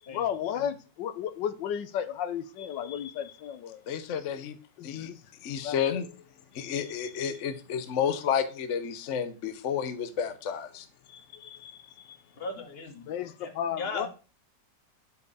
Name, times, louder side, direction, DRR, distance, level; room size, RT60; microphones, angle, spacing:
voice 1, 0.0-3.8 4.8-5.2 5.6-6.0 6.5-6.9 11.1-12.2 13.0-14.1, left 9 dB, 90° left, 1.4 m, -34 dB
voice 2, 3.9-4.5 4.8-5.1 5.4-6.1 6.5-10.9, left 8 dB, 55° left, 1.0 m, -31 dB
voice 3, 12.4-12.9 13.4-14.1, left 3 dB, 35° left, 1.5 m, -37 dB
8.1 x 4.7 x 4.8 m
omnidirectional pair, 1.9 m